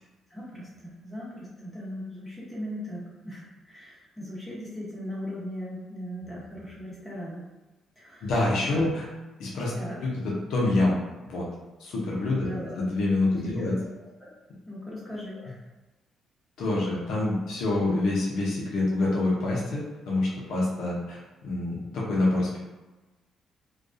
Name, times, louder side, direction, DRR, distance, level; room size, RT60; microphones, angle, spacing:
voice 1, 0.3-7.5 8.0-8.3 8.7-8.8 9.8-10.0 12.4-12.8 13.6-13.9 14.2-14.3 14.7-15.6, equal, 10° left, -7 dB, 0.9 m, -38 dB
voice 2, 8.2-9.1 9.4-9.7 10.0-11.0 11.3-11.4 11.8-12.5 12.8-13.7 16.6-22.6, left 2 dB, 80° left, -4 dB, 0.6 m, -26 dB
2.2 x 2.2 x 2.5 m, 1.1 s
cardioid pair, 90°, 0 cm